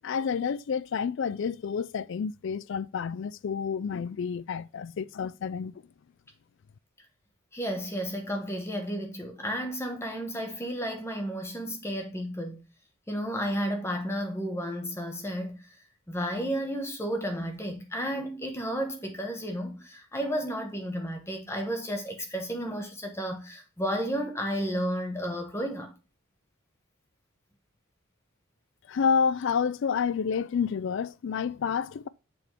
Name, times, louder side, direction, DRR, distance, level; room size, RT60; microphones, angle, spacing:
voice 1, 0.0-5.7 28.9-32.1, left 6 dB, 55° left, 0.3 m, -29 dB
voice 2, 7.5-12.6 13.1-15.6 16.1-25.9, equal, 10° left, 1.1 m, -32 dB
7.0 x 3.5 x 4.4 m
head